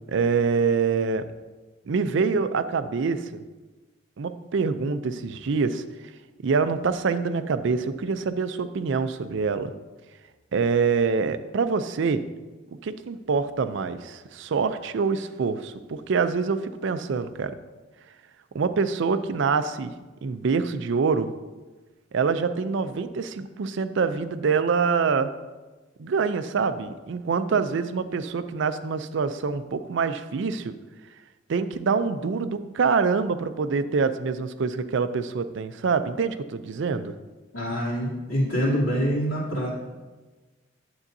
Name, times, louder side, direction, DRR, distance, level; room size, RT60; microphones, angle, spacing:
voice 1, 0.1-1.2 1.9-3.4 4.2-5.8 6.4-9.7 10.5-12.2 12.8-17.5 18.5-19.9 20.2-21.3 22.1-25.3 26.0-30.7 31.5-37.1, right 5 dB, 60° right, 12 dB, 0.4 m, -25 dB
voice 2, 37.5-39.7, equal, 85° left, -6 dB, 2.8 m, -25 dB
9.8 x 7.7 x 2.7 m, 1.2 s
head